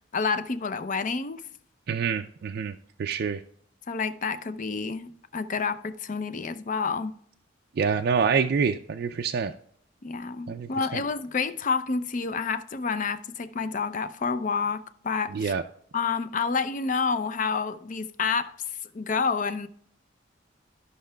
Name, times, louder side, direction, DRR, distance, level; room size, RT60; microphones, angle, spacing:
voice 1, 0.1-1.4 3.9-7.1 10.0-15.5 15.9-18.6 18.9-19.7, left 5 dB, 45° left, 0.5 m, -29 dB
voice 2, 1.9-2.7 3.0-3.4 7.8-9.5 10.5-11.0 15.3-15.6, right 6 dB, 55° right, 0.4 m, -26 dB
15.5 x 5.6 x 2.2 m
head